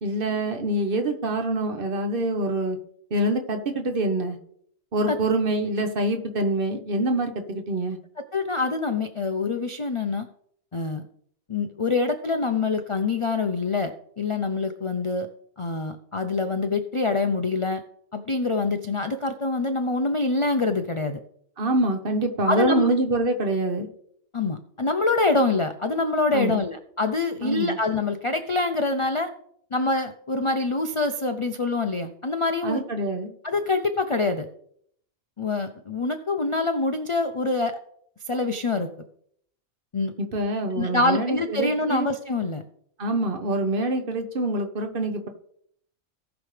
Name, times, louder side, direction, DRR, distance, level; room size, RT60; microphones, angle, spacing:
voice 1, 0.0-2.8 3.1-4.4 4.9-8.0 21.6-23.9 26.3-26.6 27.4-27.8 32.6-33.3 40.2-42.1 43.0-45.3, right 1 dB, 40° right, 6 dB, 1.3 m, -25 dB
voice 2, 8.3-10.3 10.7-11.0 11.5-15.3 15.6-17.8 18.1-21.2 22.5-22.9 24.3-29.3 29.7-32.8 33.4-34.5 35.4-37.8 38.3-38.9 39.9-40.1 40.8-42.6, left 3 dB, 50° left, 7 dB, 0.3 m, -25 dB
18.0 x 6.1 x 3.3 m, 0.67 s
omnidirectional pair, 1.5 m